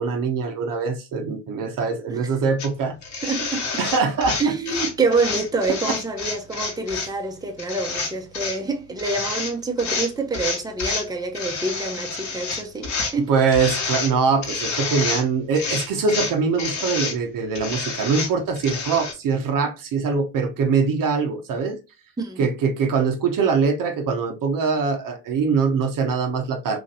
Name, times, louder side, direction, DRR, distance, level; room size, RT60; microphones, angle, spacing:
voice 1, 0.0-3.0 3.8-4.4 5.8-5.9 13.3-21.8 22.4-26.8, right 5 dB, 60° right, 0.8 m, -23 dB
sound 1, 2.6-2.7 3.0-7.1 7.6-8.6 9.0-9.5 9.8-11.1 11.3-13.1 13.5-14.1 14.4-15.3 15.5-17.2 17.6-19.1, left 4 dB, 50° left, 1.1 m, -28 dB
voice 2, 3.2-3.6 4.4-13.3 22.2-22.4, right 3 dB, 10° right, 0.7 m, -26 dB
3.0 x 2.5 x 2.6 m
hypercardioid pair, 50°, 38 cm